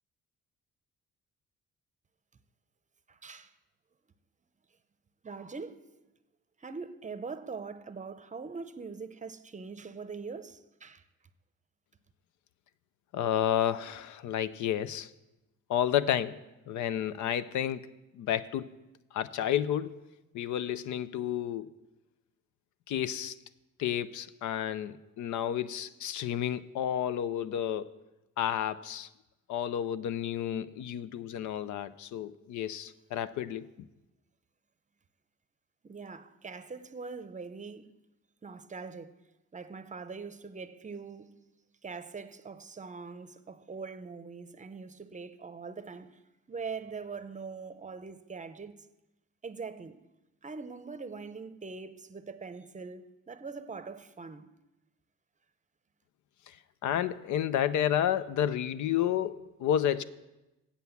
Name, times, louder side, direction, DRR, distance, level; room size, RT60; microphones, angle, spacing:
voice 1, 3.1-3.5 5.2-5.8 6.6-11.0 35.8-37.9 38.4-39.1 39.5-41.3 41.8-46.2 46.5-48.7 49.4-50.0 50.4-54.5, right 4 dB, 25° right, 0.7 m, -42 dB
voice 2, 13.1-15.1 15.7-16.4 16.7-17.9 18.2-18.7 19.1-20.0 20.3-21.7 22.9-23.3 23.8-28.0 28.4-29.1 29.5-33.7 56.8-60.0, left 10 dB, 75° left, 0.6 m, -31 dB
8.3 x 7.8 x 7.0 m
cardioid pair, 90°, 30 cm